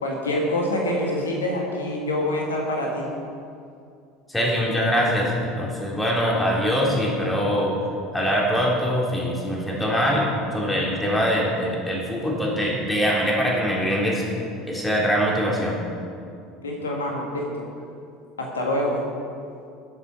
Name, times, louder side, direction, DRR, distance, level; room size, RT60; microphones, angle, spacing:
voice 1, 0.0-3.1 16.6-17.7 18.4-19.0, left 1 dB, 75° left, 0 dB, 1.7 m, -26 dB
voice 2, 4.3-7.7 8.1-14.2 14.7-15.8, equal, 10° left, -3 dB, 3.7 m, -23 dB
21.5 x 7.7 x 4.5 m, 2.4 s
figure-of-eight pair, 70°, 0 cm